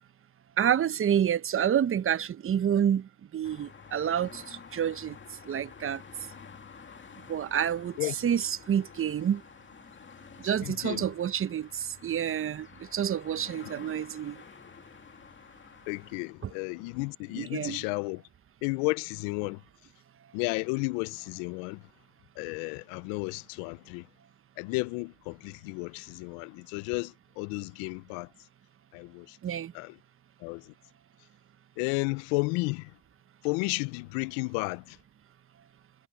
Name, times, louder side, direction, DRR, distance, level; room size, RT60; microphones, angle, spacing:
voice 1, 0.6-5.2 5.5-6.0 7.3-9.4 10.4-14.4 16.4-16.5 17.4-17.9 29.4-29.7, right 9 dB, 35° right, 1.0 m, -28 dB
sound 1, 3.4-16.2, left 6 dB, 30° left, 2.3 m, -50 dB
voice 2, 10.6-11.1 15.9-18.2 18.6-19.6 20.3-21.8 22.4-24.1 24.6-28.3 28.9-29.4 29.7-30.0 30.4-30.7 31.8-32.9 33.4-35.0, left 27 dB, 80° left, 0.7 m, -33 dB
supercardioid pair, 75°, 36 cm